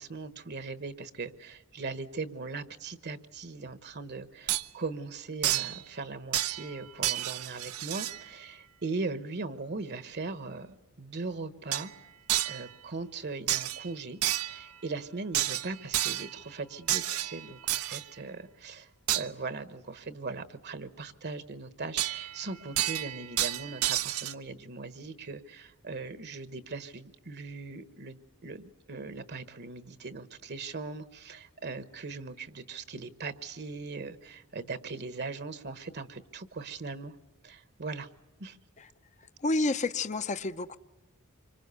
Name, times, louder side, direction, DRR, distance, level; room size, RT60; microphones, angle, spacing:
voice 1, 0.0-11.9 12.4-14.2 14.5-37.1 37.4-38.1 38.4-38.6, right 3 dB, 50° right, 1.1 m, -39 dB
sound 1, 4.5-4.6 5.4-5.8 6.3-6.8 7.0-8.2 11.7-11.9 12.3-12.7 13.5-13.9 14.2-14.6 15.3-16.4 16.9-18.0 19.1-19.3 22.0-22.4 22.8-24.3, right 13 dB, 85° right, 0.8 m, -30 dB
voice 2, 39.2-40.8, left 2 dB, 35° left, 0.7 m, -30 dB
26.5 x 25.0 x 6.9 m
head